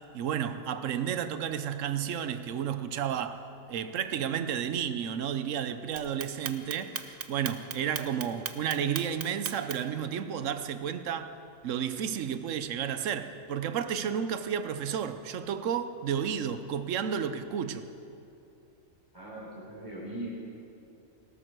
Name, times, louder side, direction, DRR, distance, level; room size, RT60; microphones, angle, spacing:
voice 1, 0.1-3.4 3.7-11.3 11.6-17.9, right 8 dB, 70° right, 1.0 m, -32 dB
Clock, 6.0-10.0, right 8 dB, 50° right, 0.7 m, -36 dB
voice 2, 19.1-20.3, right 1 dB, 15° left, 3.5 m, -40 dB
17.5 x 12.5 x 4.6 m
omnidirectional pair, 1.4 m